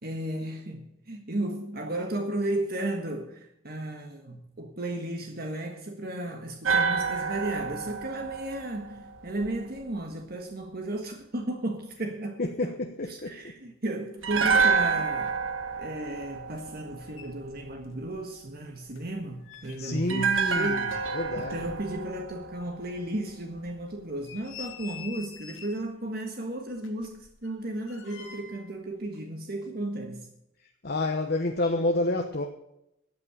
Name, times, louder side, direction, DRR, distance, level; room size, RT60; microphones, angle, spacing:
voice 1, 0.0-12.7 13.1-15.4 15.8-21.0 21.4-30.3, right 1 dB, 50° right, 1.5 m, -34 dB
sound 1, 6.6-9.8 14.2-17.4 20.1-23.3 23.6-23.7, right 5 dB, 75° right, 1.4 m, -28 dB
voice 2, 12.4-13.4 19.8-20.7 21.1-21.6 30.8-32.5, left 2 dB, 50° left, 1.1 m, -28 dB
sound 2, 16.8-16.9 17.1-18.1 18.3-22.3 22.7-22.8 23.3-23.4 24.0-25.9 26.8-28.8 29.0-29.2, left 7 dB, 85° left, 2.2 m, -47 dB
13.5 x 8.6 x 6.8 m
head